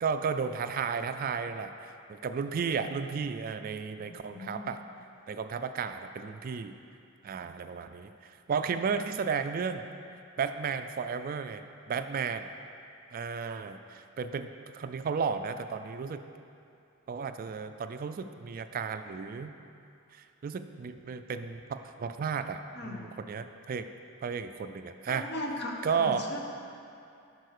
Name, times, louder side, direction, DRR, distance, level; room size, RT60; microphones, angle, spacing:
voice 1, 0.0-4.8 5.3-6.7 7.2-9.8 10.4-12.5 13.1-16.2 17.1-19.5 20.1-23.9 24.2-25.3 25.8-26.3, right 6 dB, 40° right, 9 dB, 0.3 m, -33 dB
voice 2, 4.0-4.7 22.7-23.1 25.1-26.4, left 1 dB, 55° left, 1 dB, 1.1 m, -38 dB
11.0 x 4.6 x 6.5 m, 2.6 s
head